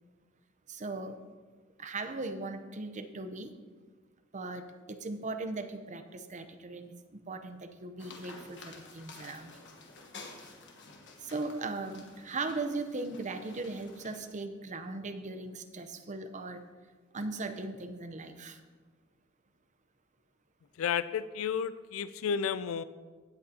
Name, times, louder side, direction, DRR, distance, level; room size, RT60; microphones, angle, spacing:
voice 1, 0.7-1.2 1.8-3.5 4.3-9.7 11.2-16.6 17.1-18.6, right 3 dB, 35° right, 8 dB, 0.7 m, -38 dB
sound 1, 8.0-14.2, left 3 dB, 60° left, 1.3 m, -51 dB
voice 2, 20.8-22.8, left 7 dB, 80° left, 15 dB, 0.4 m, -32 dB
16.5 x 7.7 x 2.8 m, 1.4 s
head